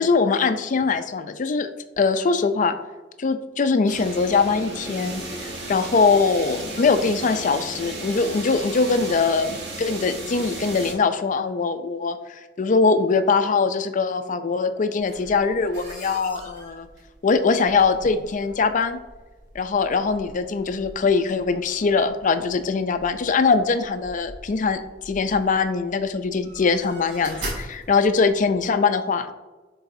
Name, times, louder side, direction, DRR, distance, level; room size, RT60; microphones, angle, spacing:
voice 1, 0.0-1.7 2.0-2.7 3.2-16.9 17.2-19.0 19.5-24.8 25.1-29.3, left 4 dB, 45° left, 10 dB, 0.4 m, -22 dB
sound 1, 3.9-10.9, right 2 dB, 85° right, 1.6 m, -34 dB
sound 2, 15.0-28.6, right 1 dB, 70° right, 2.1 m, -42 dB
10.5 x 4.0 x 2.7 m, 1.2 s
head